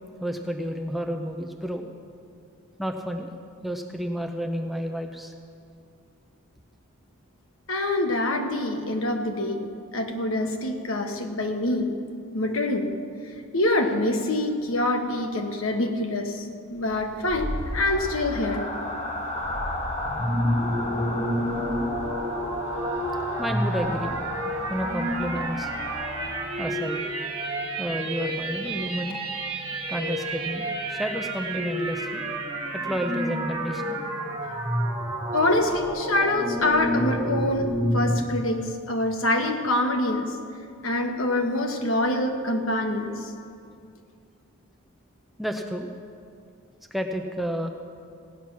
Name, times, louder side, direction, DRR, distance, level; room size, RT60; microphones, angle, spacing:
voice 1, 0.2-1.9 2.8-3.3 3.6-5.3 23.4-24.2 24.7-25.7 26.6-27.1 27.8-29.2 29.9-32.2 32.7-34.1 45.4-45.9 46.9-47.7, equal, ahead, 3 dB, 0.6 m, -31 dB
voice 2, 7.7-9.6 9.9-12.0 12.3-12.9 13.5-18.7 35.3-40.4 40.8-43.3, left 1 dB, 65° left, 4 dB, 1.2 m, -25 dB
sound 1, 16.8-26.8, left 1 dB, 30° left, 1.2 m, -34 dB
sound 2, 20.0-38.2, right 1 dB, 20° right, 1.7 m, -29 dB
17.0 x 8.8 x 6.0 m, 2.4 s
head